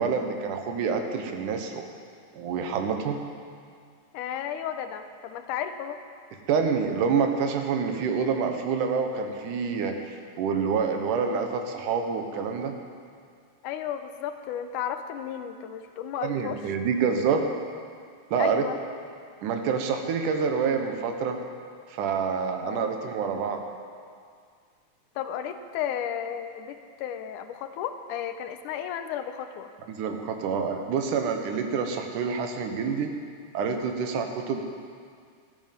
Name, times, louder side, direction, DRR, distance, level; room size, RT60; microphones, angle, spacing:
voice 1, 0.0-1.9 2.3-3.2 6.5-12.7 16.2-17.4 18.3-18.6 19.4-21.4 21.9-23.6 29.9-33.1 33.5-34.6, right 6 dB, 85° right, 5 dB, 2.6 m, -27 dB
voice 2, 4.1-6.0 13.6-16.6 18.4-18.8 22.6-22.9 25.2-29.7, left 9 dB, 90° left, 8 dB, 2.3 m, -33 dB
13.0 x 12.5 x 5.9 m, 2.1 s
omnidirectional pair, 3.6 m